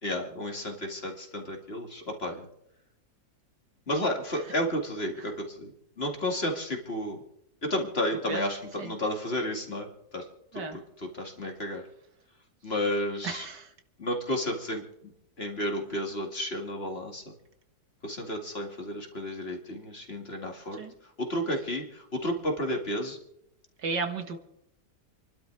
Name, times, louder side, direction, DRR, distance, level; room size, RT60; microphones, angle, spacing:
voice 1, 0.0-2.5 3.9-5.7 6.0-7.2 7.6-9.9 10.1-10.2 10.5-11.8 12.6-13.5 14.0-14.8 15.4-17.3 18.0-20.8 21.2-23.2, left 1 dB, 35° left, 2 dB, 2.5 m, -32 dB
voice 2, 13.2-13.6 20.8-20.9 23.8-24.4, right 4 dB, 75° right, 6 dB, 2.2 m, -33 dB
28.5 x 12.0 x 3.4 m, 0.80 s
omnidirectional pair, 1.9 m